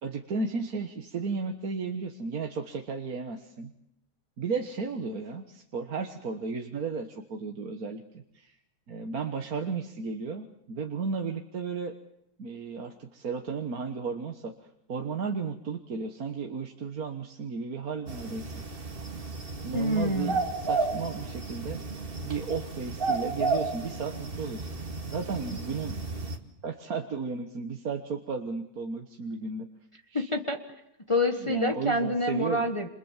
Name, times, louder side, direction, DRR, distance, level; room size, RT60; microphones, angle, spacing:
voice 1, 0.0-3.7 4.4-8.5 8.9-11.9 12.4-14.5 14.9-18.5 19.6-21.8 22.2-24.7 25.1-26.0 26.6-29.7 30.1-30.3 31.4-32.7, right 5 dB, 65° right, 4 dB, 1.9 m, -34 dB
sound 1, 18.1-26.4, right 3 dB, 35° right, 2.3 m, -33 dB
voice 2, 19.7-20.5 30.1-30.6 31.1-32.9, left 1 dB, 20° left, 5 dB, 1.5 m, -27 dB
28.5 x 27.5 x 7.4 m, 0.80 s
omnidirectional pair, 1.7 m